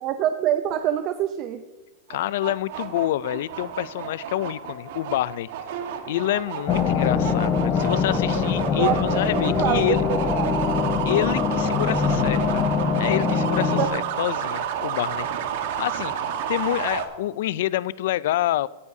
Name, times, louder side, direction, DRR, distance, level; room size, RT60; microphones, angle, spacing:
voice 1, 0.0-1.6 8.8-9.8 10.1-10.6 13.8-13.9, right 11 dB, 40° right, 9 dB, 0.5 m, -25 dB
voice 2, 2.1-5.5 6.1-10.0 11.1-15.3 15.6-18.7, left 14 dB, 65° left, 20 dB, 0.3 m, -27 dB
sound 1, 2.1-17.1, right 8 dB, 65° right, 1.3 m, -30 dB
sound 2, 6.7-13.9, left 6 dB, 25° left, 0.7 m, -23 dB
16.5 x 9.6 x 2.7 m, 1.2 s
supercardioid pair, 145°, 0 cm